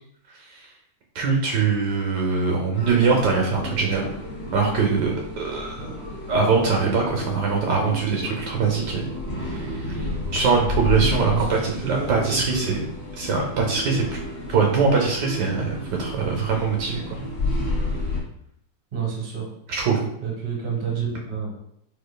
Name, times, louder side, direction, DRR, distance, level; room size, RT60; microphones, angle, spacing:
voice 1, 1.1-4.0 4.5-5.8 6.3-9.1 9.4-12.8 13.2-14.2 14.5-17.2 19.7-20.0, right 5 dB, 70° right, 1 dB, 1.2 m, -22 dB
sound 1, 2.7-18.2, left 2 dB, 55° left, 0.6 m, -31 dB
voice 2, 11.3-12.8 18.9-19.5 20.2-21.6, right 6 dB, 35° right, -2 dB, 0.8 m, -29 dB
4.3 x 2.7 x 2.2 m, 0.72 s
omnidirectional pair, 2.0 m